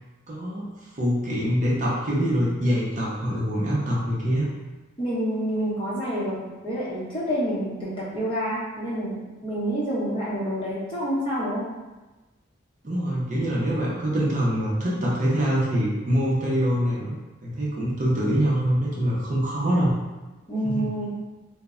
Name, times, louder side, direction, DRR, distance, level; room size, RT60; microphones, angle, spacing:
voice 1, 0.3-0.6 0.9-4.5 12.8-17.1 17.4-19.9 20.6-20.9, equal, 40° right, -6 dB, 0.5 m, -24 dB
voice 2, 5.0-6.4 6.6-9.2 9.4-11.6 20.5-21.1, equal, 25° left, -9 dB, 0.7 m, -27 dB
2.1 x 2.0 x 3.5 m, 1.2 s
head